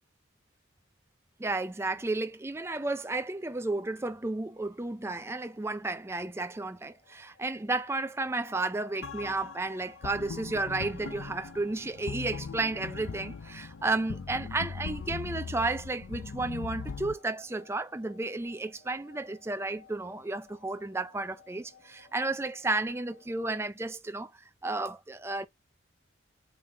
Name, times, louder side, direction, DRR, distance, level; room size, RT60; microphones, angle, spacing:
voice 1, 1.4-24.3 24.6-25.5, right 2 dB, 15° right, 0.4 m, -32 dB
sound 1, 4.2-23.7, left 6 dB, 50° left, 1.5 m, -59 dB
sound 2, 9.0-17.2, left 5 dB, 85° left, 0.5 m, -40 dB
8.4 x 3.8 x 3.3 m
head